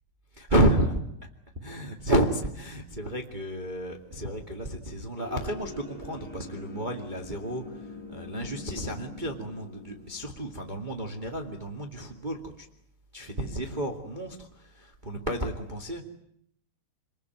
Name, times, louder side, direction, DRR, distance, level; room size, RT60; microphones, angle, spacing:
voice 1, 0.4-1.0 1.6-7.6 8.1-12.6 13.1-16.0, right 1 dB, 80° right, 4 dB, 0.4 m, -30 dB
sound 1, 5.2-11.8, left 2 dB, 45° left, 8.0 m, -45 dB
27.0 x 22.0 x 9.4 m, 0.72 s
omnidirectional pair, 5.5 m